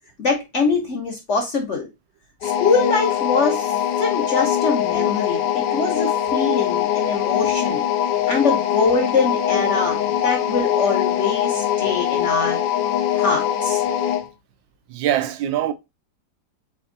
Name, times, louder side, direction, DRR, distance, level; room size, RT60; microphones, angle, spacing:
voice 1, 0.2-1.9 2.4-3.7 4.0-7.8 8.3-12.6 13.2-13.8, left 4 dB, 50° left, 0.9 m, -23 dB
sound 1, 2.4-14.3, left 10 dB, 75° left, 1.2 m, -22 dB
voice 2, 14.9-15.7, right 11 dB, 80° right, 1.3 m, -22 dB
3.9 x 3.5 x 3.8 m
omnidirectional pair, 2.0 m